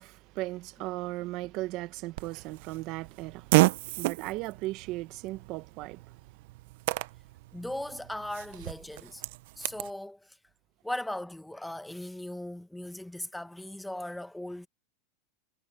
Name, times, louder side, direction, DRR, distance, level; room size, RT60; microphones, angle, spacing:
voice 1, 0.0-6.0, right 19 dB, 50° right, 1.5 m, -37 dB
Fart, 2.2-9.9, right 22 dB, 70° right, 0.6 m, -32 dB
voice 2, 7.5-9.2 9.6-10.4 10.8-14.7, left 1 dB, 5° left, 1.2 m, -38 dB
supercardioid pair, 120°, 0 cm